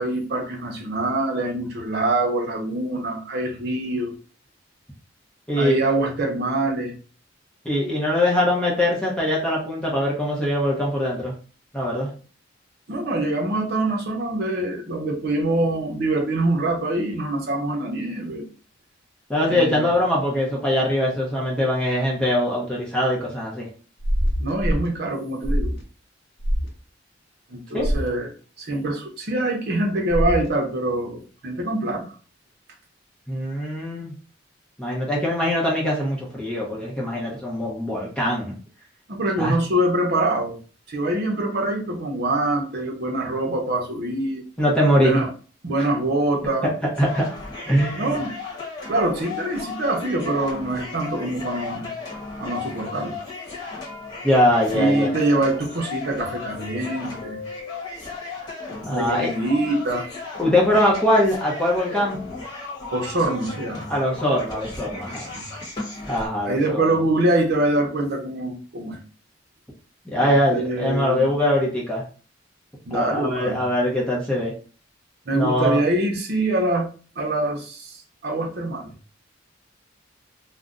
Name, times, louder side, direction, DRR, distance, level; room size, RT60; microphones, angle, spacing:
voice 1, 0.0-4.1 5.6-7.0 12.9-18.4 19.5-19.9 24.4-25.7 27.5-28.3 28.6-32.1 39.1-40.6 40.9-44.4 44.9-45.3 45.6-46.7 48.0-48.3 48.9-51.9 52.4-53.2 54.7-57.4 58.7-60.1 62.9-63.9 65.3-65.6 66.4-69.0 70.2-71.3 72.9-73.6 75.3-76.9 77.2-78.9, right 2 dB, 55° right, 2 dB, 0.8 m, -24 dB
voice 2, 5.5-5.8 7.6-11.3 11.7-12.1 19.3-23.7 27.7-27.9 33.3-34.1 34.8-38.5 39.4-39.6 44.6-45.2 47.0-47.3 47.7-48.1 54.2-55.1 58.8-59.3 60.4-62.2 63.9-65.2 66.1-66.9 70.1-72.0 72.9-74.5 75.3-75.8, left 1 dB, 5° left, -4 dB, 0.7 m, -22 dB
sound 1, 24.0-24.9 25.4-25.8 26.4-26.7 27.8-28.1 30.1-30.5, equal, 60° left, 0.7 m, -23 dB
sound 2, 46.9-66.3, left 4 dB, 25° left, 1.1 m, -35 dB
2.5 x 2.1 x 3.6 m, 0.38 s
head